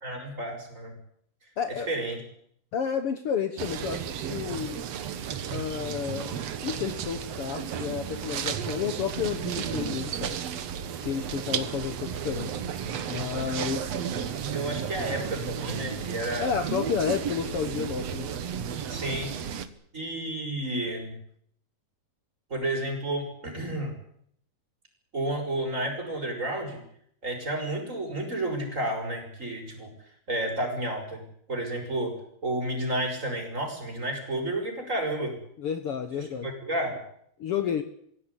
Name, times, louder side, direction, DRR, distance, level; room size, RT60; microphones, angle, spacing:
voice 1, 0.0-0.9 1.9-2.2 14.3-16.5 18.9-19.3 19.9-21.1 22.5-23.9 25.1-26.8 27.2-29.9 30.3-31.2 31.5-32.1 32.4-35.4 36.4-37.0, right 1 dB, 20° right, 2 dB, 6.3 m, -31 dB
voice 2, 1.6-1.9 2.7-4.8 5.5-10.4 11.0-12.5 13.1-13.9 16.4-18.3 35.6-36.5 37.4-37.8, left 7 dB, 80° left, 9 dB, 1.3 m, -31 dB
sound 1, 3.6-19.7, right 8 dB, 60° right, 1.8 m, -33 dB
24.0 x 16.5 x 9.9 m, 0.69 s
omnidirectional pair, 4.6 m